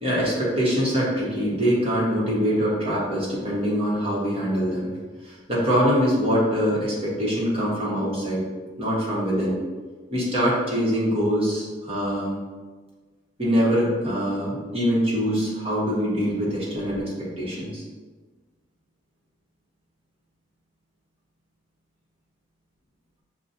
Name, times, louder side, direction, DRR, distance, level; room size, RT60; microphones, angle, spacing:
voice 1, 0.0-4.9 5.2-8.4 8.8-9.6 10.1-12.4 13.4-17.8, equal, 30° right, -7 dB, 1.3 m, -24 dB
6.9 x 2.3 x 2.7 m, 1.4 s
head